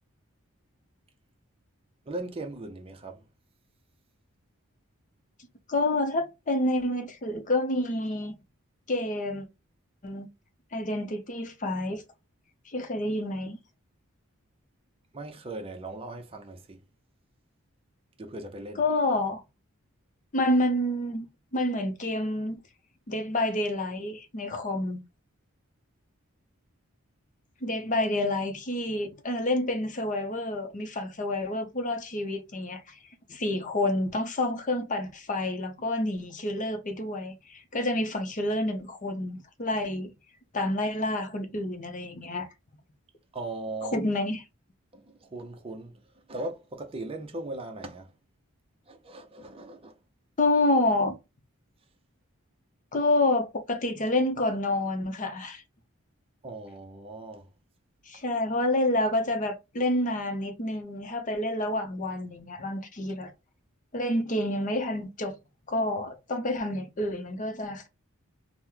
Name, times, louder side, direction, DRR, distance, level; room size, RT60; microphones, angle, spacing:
voice 1, 2.1-3.2 15.1-16.8 18.2-18.8 43.3-44.0 44.9-48.1 48.9-50.0 56.4-57.5 58.1-58.2, right 2 dB, 25° right, 0.6 m, -39 dB
voice 2, 5.7-8.3 8.9-9.5 10.0-10.3 10.7-12.0 12.7-13.6 18.8-19.4 20.3-21.2 21.5-22.6 23.1-25.0 27.6-33.0 33.3-40.1 40.5-42.5 43.8-44.4 50.4-51.1 52.9-55.6 58.1-63.3 63.9-65.3 65.7-67.9, left 1 dB, 40° left, 0.7 m, -28 dB
3.0 x 2.1 x 3.7 m
head